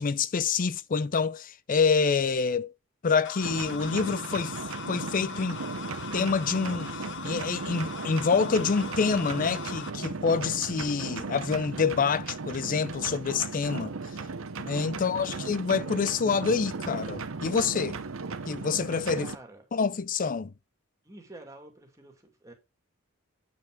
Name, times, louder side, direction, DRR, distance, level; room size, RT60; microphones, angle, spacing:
voice 1, 0.0-2.7 3.0-4.5 4.9-5.6 6.1-6.9 7.2-13.9 14.6-18.0 18.5-19.3 19.7-20.5, left 5 dB, 40° left, 0.5 m, -27 dB
sound 1, 3.3-9.9, left 7 dB, 55° left, 0.8 m, -40 dB
sound 2, 3.4-19.4, right 4 dB, 65° right, 0.8 m, -36 dB
voice 2, 14.9-15.3 19.2-19.6 21.0-22.5, right 1 dB, 15° right, 2.4 m, -49 dB
9.0 x 5.9 x 3.7 m
head